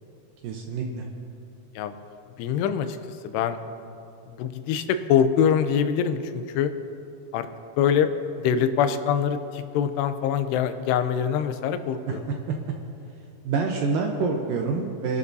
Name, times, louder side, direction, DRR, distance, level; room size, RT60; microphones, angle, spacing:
voice 1, 0.4-1.1 12.1-12.6 13.4-15.2, right 4 dB, 75° right, 1 dB, 2.1 m, -27 dB
voice 2, 2.4-3.0 3.2-3.6 4.3-6.7 7.3-7.5 7.8-8.1 8.4-12.2, left 8 dB, 90° left, 9 dB, 2.8 m, -24 dB
26.5 x 11.5 x 2.7 m, 2.6 s
omnidirectional pair, 4.8 m